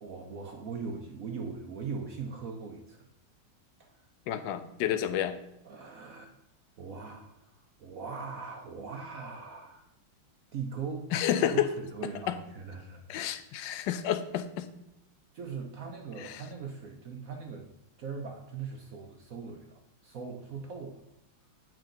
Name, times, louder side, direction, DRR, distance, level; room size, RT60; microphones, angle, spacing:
voice 1, 0.0-3.0 3.8-4.1 5.6-6.3 6.8-9.8 10.5-11.1 11.4-13.0 15.3-17.7 18.0-21.0, right 5 dB, 60° right, 3 dB, 0.9 m, -40 dB
voice 2, 4.3-5.3 11.1-11.7 12.3-12.4 13.1-14.7 16.2-16.4, left 10 dB, 75° left, 10 dB, 1.2 m, -30 dB
9.1 x 6.1 x 3.8 m, 0.86 s
omnidirectional pair, 2.3 m